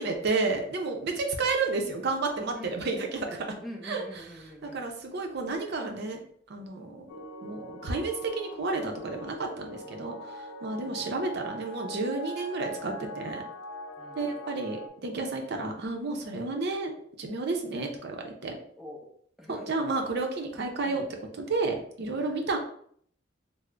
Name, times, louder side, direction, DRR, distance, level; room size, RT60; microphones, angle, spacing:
voice 1, 0.0-3.5 3.8-4.0 4.6-6.2 6.5-7.2 7.4-13.4 14.1-16.9 17.2-18.6 19.5-21.0 21.4-22.6, right 3 dB, 60° right, 3 dB, 0.6 m, -31 dB
voice 2, 3.6-4.9 10.7-11.1 14.0-14.3 18.8-19.1 19.4-19.6 20.8-21.1 22.1-22.4, left 1 dB, ahead, -1 dB, 0.6 m, -44 dB
sound 1, 7.1-14.9, equal, 90° left, 0.4 m, -42 dB
3.7 x 2.0 x 3.3 m, 0.62 s
head